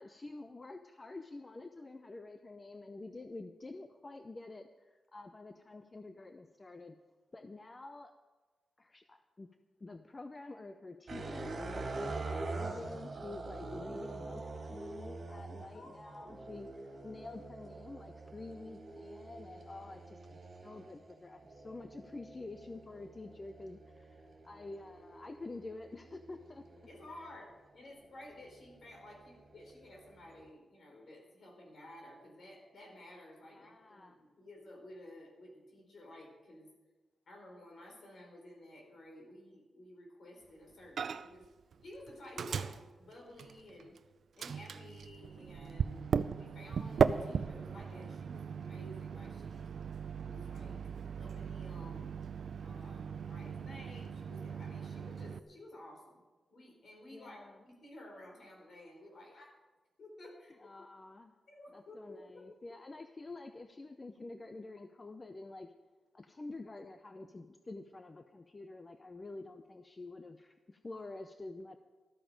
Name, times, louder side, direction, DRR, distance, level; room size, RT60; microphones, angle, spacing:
voice 1, 0.0-7.0 7.3-8.1 8.8-9.5 9.8-14.4 14.7-26.7 33.5-34.2 57.1-57.6 60.5-61.4 61.7-65.7 66.1-71.8, left 2 dB, 25° left, 7 dB, 0.6 m, -48 dB
sound 1, 11.1-27.4 28.0-30.5, right 2 dB, 50° right, 3.2 m, -45 dB
voice 2, 15.7-16.4 26.9-36.7 37.3-41.5 41.8-44.0 44.3-49.8 50.2-50.8 51.1-52.1 52.6-56.2 56.5-59.5 60.0-60.6 61.5-62.4, left 1 dB, 55° left, 0 dB, 5.1 m, -53 dB
Microwave oven, 41.0-41.5 41.7-44.0 44.4-55.4, right 6 dB, 65° right, 0.5 m, -37 dB
13.5 x 13.5 x 5.2 m, 1.2 s
wide cardioid pair, 150°, 0 cm